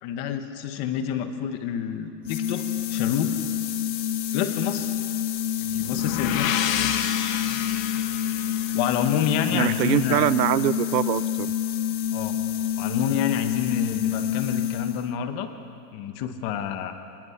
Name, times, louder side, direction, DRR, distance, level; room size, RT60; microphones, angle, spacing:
voice 1, 0.0-3.3 4.3-4.9 5.6-6.5 8.7-10.3 12.1-12.4 12.8-15.5 15.9-16.9, left 9 dB, 25° left, 8 dB, 1.3 m, -28 dB
sound 1, 2.2-15.2, left 10 dB, 90° left, 1.2 m, -28 dB
sound 2, 5.7-9.6, left 9 dB, 50° left, 1.6 m, -30 dB
voice 2, 9.5-11.5, right 13 dB, 75° right, 17 dB, 0.9 m, -23 dB
25.5 x 20.0 x 8.1 m, 2.5 s
supercardioid pair, 170°, 50 cm